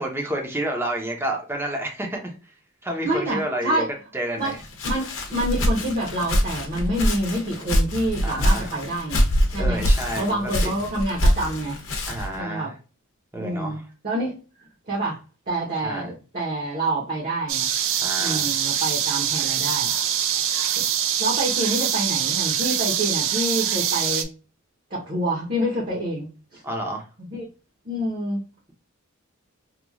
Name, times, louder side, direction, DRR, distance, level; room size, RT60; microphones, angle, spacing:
voice 1, 0.0-2.5 2.8-3.8 4.1-4.5 8.2-8.7 9.6-10.5 12.1-12.7 13.3-13.8 15.8-16.1 18.0-18.5 26.6-27.0, right 1 dB, 10° right, 1 dB, 0.7 m, -29 dB
voice 2, 3.0-3.9 4.4-4.6 4.8-9.3 9.5-9.8 10.2-11.8 12.4-12.7 13.4-14.4 14.9-15.2 15.5-17.7 18.2-19.9 20.3-20.8 21.2-24.3 24.9-26.6 27.3-27.5 27.8-28.4, right 1 dB, 40° right, -4 dB, 0.9 m, -27 dB
Walk footsteps, 4.4-12.4, equal, 65° left, 0.8 m, -24 dB
sound 1, 17.5-24.2, right 9 dB, 60° right, 0.4 m, -24 dB
3.0 x 2.3 x 2.3 m, 0.34 s
head